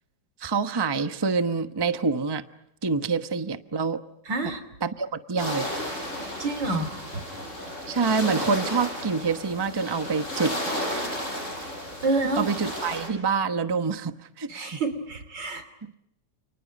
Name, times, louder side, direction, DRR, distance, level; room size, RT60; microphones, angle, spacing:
voice 1, 0.4-2.4 2.8-4.0 4.4-4.5 4.8-5.7 7.9-11.0 12.4-14.8 15.8-15.9, right 5 dB, 15° right, 9 dB, 0.9 m, -27 dB
voice 2, 4.3-4.6 6.4-7.0 12.0-12.5 14.5-15.6, right 3 dB, 80° right, 9 dB, 3.8 m, -27 dB
sound 1, 5.4-13.1, equal, 40° left, 7.5 m, -33 dB
30.0 x 29.5 x 5.4 m, 0.77 s
omnidirectional pair, 1.9 m